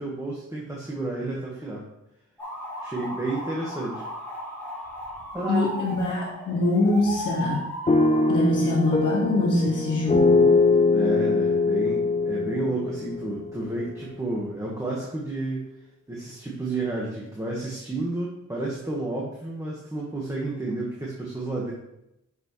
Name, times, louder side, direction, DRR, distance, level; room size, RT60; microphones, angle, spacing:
voice 1, 0.0-1.9 2.8-4.1 5.3-5.7 10.9-15.7 16.1-21.7, right 2 dB, 10° right, -4 dB, 1.3 m, -31 dB
sound 1, 2.4-8.3, left 1 dB, 5° left, 3.1 m, -36 dB
voice 2, 5.5-7.6 8.3-10.5, left 2 dB, 70° left, -7 dB, 1.9 m, -24 dB
sound 2, 7.9-13.9, left 3 dB, 25° left, 0.4 m, -22 dB
9.9 x 6.1 x 3.1 m, 0.84 s
wide cardioid pair, 165°, 31 cm